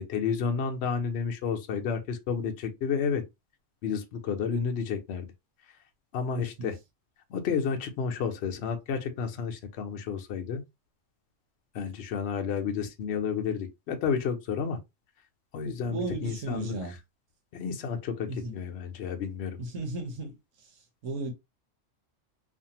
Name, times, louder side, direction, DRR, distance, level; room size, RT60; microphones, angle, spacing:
voice 1, 0.0-3.2 3.8-5.3 6.1-6.8 7.3-10.6 11.7-14.8 15.5-16.7 17.5-19.6, left 6 dB, 65° left, 0.9 m, -31 dB
voice 2, 6.3-6.7 15.8-17.0 18.3-18.6 19.6-20.4 20.6-20.7 21.0-21.3, right 2 dB, 75° right, 1.2 m, -35 dB
2.6 x 2.5 x 2.8 m
omnidirectional pair, 1.3 m